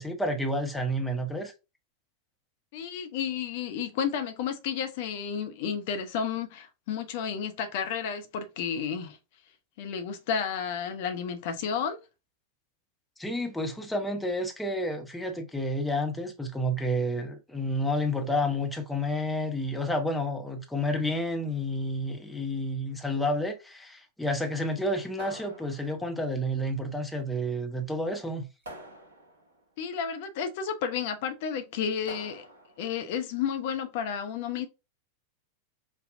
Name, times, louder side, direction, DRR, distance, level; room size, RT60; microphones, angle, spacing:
voice 1, 0.0-1.5 13.2-28.5, equal, 5° left, 0.8 m, -30 dB
voice 2, 2.7-9.2 9.8-12.0 29.8-32.4 32.8-34.7, left 7 dB, 50° left, 0.7 m, -32 dB
sound 1, 25.2-26.3 28.6-29.6 32.1-32.9, right 1 dB, 70° right, 1.0 m, -46 dB
5.3 x 2.2 x 2.7 m
figure-of-eight pair, 90°, 0 cm